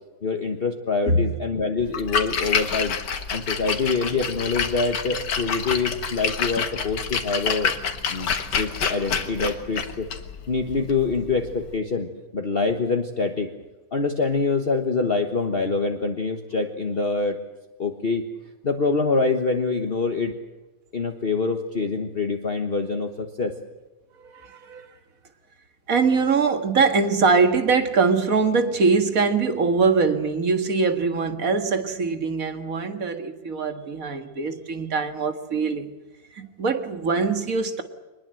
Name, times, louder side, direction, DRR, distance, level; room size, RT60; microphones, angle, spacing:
voice 1, 0.2-3.0 3.3-7.7 8.1-8.3 8.6-10.1 10.5-13.5 13.9-17.4 17.8-18.3 18.6-20.3 20.9-23.5, left 4 dB, 35° left, 1.5 m, -25 dB
Splash splatter, 1.8-11.7, left 6 dB, 90° left, 2.2 m, -28 dB
voice 2, 24.3-24.9 25.9-35.9 36.4-37.8, right 4 dB, 55° right, 2.1 m, -22 dB
24.0 x 21.0 x 7.7 m
omnidirectional pair, 1.8 m